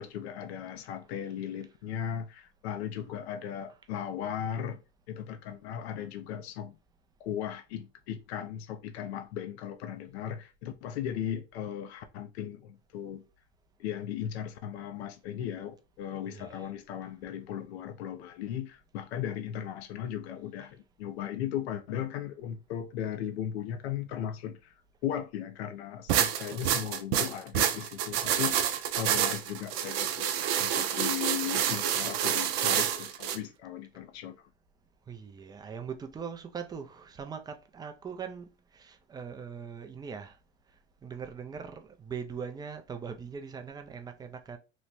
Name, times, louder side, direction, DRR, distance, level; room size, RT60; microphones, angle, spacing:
voice 1, 0.0-4.8 5.1-6.8 7.2-13.2 13.8-24.7 25.0-28.7 28.9-30.3 30.6-34.5, left 9 dB, 85° left, 0.6 m, -37 dB
voice 2, 16.3-16.7 20.6-20.7 26.5-26.8 35.1-40.4 41.0-44.6, right 6 dB, 15° right, 0.3 m, -41 dB
sound 1, 26.1-33.4, right 9 dB, 75° right, 0.6 m, -28 dB
3.0 x 2.1 x 4.0 m
supercardioid pair, 120°, 31 cm